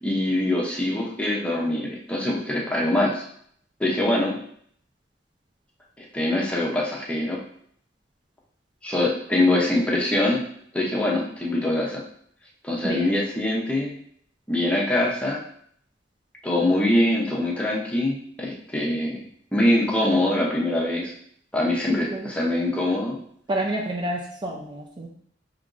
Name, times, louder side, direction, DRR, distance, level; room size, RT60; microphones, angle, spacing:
voice 1, 0.0-3.2 3.8-4.3 6.0-7.4 8.8-10.4 10.7-12.0 12.6-13.9 14.5-15.4 16.4-19.2 19.5-21.1 21.5-23.2, left 1 dB, 5° left, -3 dB, 0.7 m, -23 dB
voice 2, 12.8-13.2 21.9-22.3 23.5-25.1, right 1 dB, 25° right, -1 dB, 0.4 m, -29 dB
5.0 x 3.0 x 2.5 m, 0.64 s
head